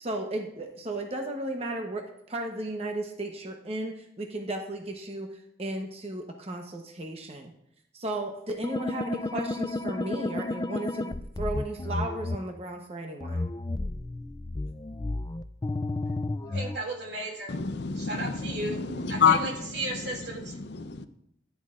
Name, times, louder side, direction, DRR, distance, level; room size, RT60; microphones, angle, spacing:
voice 1, 0.0-5.3 5.6-7.5 7.9-13.5, right 1 dB, 35° right, 2 dB, 0.9 m, -35 dB
sound 1, 8.6-12.4 13.2-16.8, left 2 dB, 20° left, 0.3 m, -32 dB
voice 2, 16.4-17.6 18.0-18.8 19.1-20.6, right 2 dB, 70° right, 0 dB, 2.5 m, -35 dB
voice 3, 17.5-21.1, left 6 dB, 65° left, 10 dB, 0.6 m, -28 dB
13.5 x 10.5 x 2.5 m, 0.76 s
head